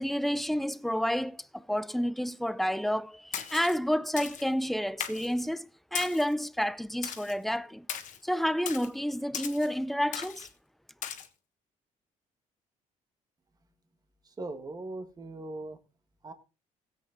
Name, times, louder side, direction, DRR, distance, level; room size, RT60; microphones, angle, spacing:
voice 1, 0.0-7.9 8.2-10.5, equal, ahead, 0.5 m, -30 dB
Splash splatter, 3.3-3.7 4.2-4.5 5.0-5.3 6.0-6.3 7.0-7.4 7.9-8.2 8.7-8.9 9.3-9.7 10.1-10.5 11.0-11.3, left 9 dB, 65° left, 1.4 m, -37 dB
voice 2, 14.3-15.8 16.2-16.3, right 2 dB, 30° right, 1.7 m, -39 dB
16.5 x 8.0 x 3.6 m
cardioid pair, 115°, 14 cm